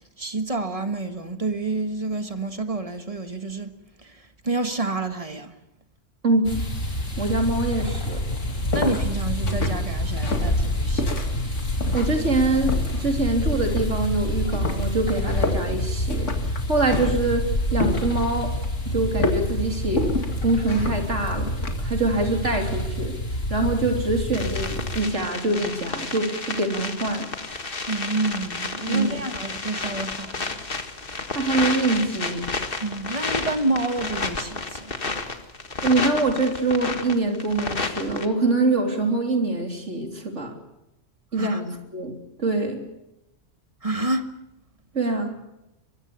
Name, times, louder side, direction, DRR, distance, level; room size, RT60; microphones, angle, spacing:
voice 1, 0.2-3.7 4.0-5.5 8.7-11.1 27.9-30.6 32.8-34.9 41.4-41.6 43.8-44.3, right 2 dB, 30° right, 1.6 m, -29 dB
voice 2, 6.2-6.6 7.2-8.2 11.9-16.3 16.7-17.5 17.7-18.5 18.9-20.1 20.4-21.5 21.8-23.2 23.5-27.3 28.9-29.2 31.3-32.4 35.8-40.6 41.3-42.1 42.4-42.8 44.9-45.4, right 2 dB, 70° right, 3.7 m, -24 dB
sound 1, 6.4-25.0, left 1 dB, 90° left, 3.6 m, -27 dB
sound 2, 7.3-21.8, left 3 dB, 75° left, 2.6 m, -32 dB
sound 3, 24.3-38.3, left 3 dB, 45° left, 1.9 m, -31 dB
23.0 x 22.0 x 7.0 m
omnidirectional pair, 1.3 m